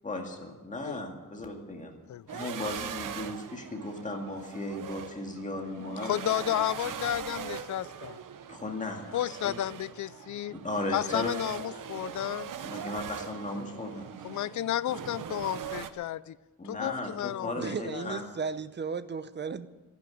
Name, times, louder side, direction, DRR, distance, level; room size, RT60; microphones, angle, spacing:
voice 1, 0.0-1.9 2.3-6.1 8.5-9.5 10.5-11.3 12.6-14.1 16.6-18.2, left 2 dB, 20° left, 2 dB, 2.0 m, -36 dB
sound 1, 2.3-15.9, right 8 dB, 70° right, 0.9 m, -41 dB
voice 2, 6.0-8.2 9.1-10.5 10.9-12.5 14.2-16.4 16.6-18.1, left 12 dB, 60° left, 17 dB, 0.5 m, -32 dB
voice 3, 17.6-19.7, right 5 dB, 30° right, 13 dB, 0.7 m, -35 dB
12.0 x 11.5 x 9.3 m, 1.2 s
wide cardioid pair, 170°, 33 cm